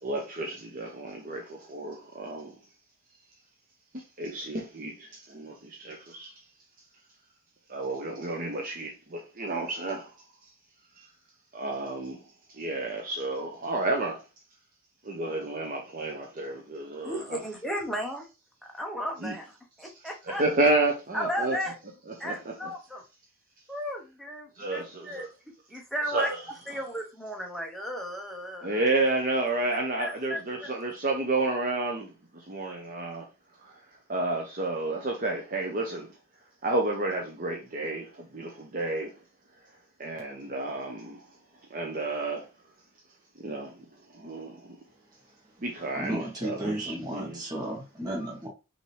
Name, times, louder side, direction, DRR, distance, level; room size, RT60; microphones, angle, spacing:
voice 1, 0.0-2.6 3.9-6.4 7.7-10.2 11.0-11.1 11.5-12.2 12.5-14.2 15.0-17.4 19.2-19.3 19.8-21.6 22.1-22.5 24.6-25.3 26.1-26.4 28.6-33.3 33.6-33.8 34.1-36.1 36.6-39.1 40.0-41.3 41.7-42.5 43.4-44.8 45.6-47.6, right 2 dB, 40° right, 0.8 m, -31 dB
voice 2, 17.0-18.3 18.7-19.5 19.8-20.4 21.1-21.7 22.2-23.0 23.7-26.3 26.7-28.9 30.0-30.7, equal, ahead, 0.9 m, -35 dB
voice 3, 46.0-48.5, right 1 dB, 20° right, 1.3 m, -34 dB
5.5 x 2.9 x 3.2 m
head